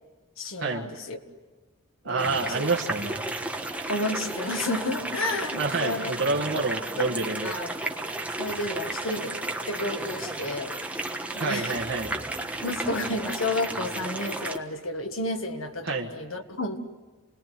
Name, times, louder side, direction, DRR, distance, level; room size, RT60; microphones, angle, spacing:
voice 1, 0.4-1.2 2.1-2.7 3.9-6.1 6.5-7.1 7.4-7.7 8.4-10.8 11.3-11.8 12.1-16.8, left 2 dB, 75° left, 6 dB, 1.9 m, -32 dB
voice 2, 2.0-3.2 5.6-7.5 11.3-12.1 15.8-16.1, right 3 dB, 60° right, -2 dB, 1.6 m, -28 dB
sound 1, 2.2-14.6, right 2 dB, 5° right, 1.3 m, -33 dB
29.0 x 19.5 x 9.4 m, 1.3 s
head